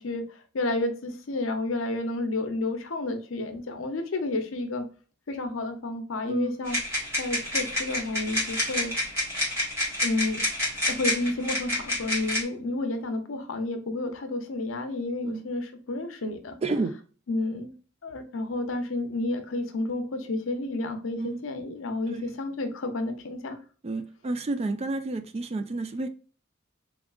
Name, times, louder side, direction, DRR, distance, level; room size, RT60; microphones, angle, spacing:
voice 1, 0.0-4.8 5.3-6.8 7.2-8.9 10.0-10.4 10.9-16.6 17.3-17.7 18.0-23.6, left 2 dB, 80° left, 7 dB, 0.7 m, -31 dB
voice 2, 6.3-6.7 15.2-15.4 16.6-17.0 21.2-21.4 22.0-22.4 23.8-26.1, right 2 dB, 30° right, 9 dB, 0.3 m, -30 dB
sound 1, 6.7-12.4, left 1 dB, 15° right, 1.8 m, -29 dB
3.6 x 3.5 x 2.4 m, 0.38 s
head